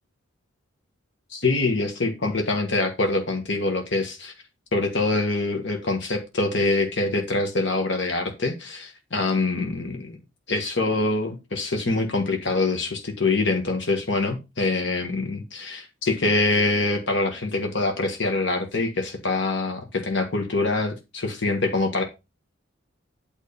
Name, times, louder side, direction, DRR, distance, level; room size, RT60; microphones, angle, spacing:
voice 1, 1.3-4.3 4.7-10.2 10.5-22.0, left 2 dB, 60° left, 1.5 m, -25 dB
9.3 x 3.6 x 6.8 m
head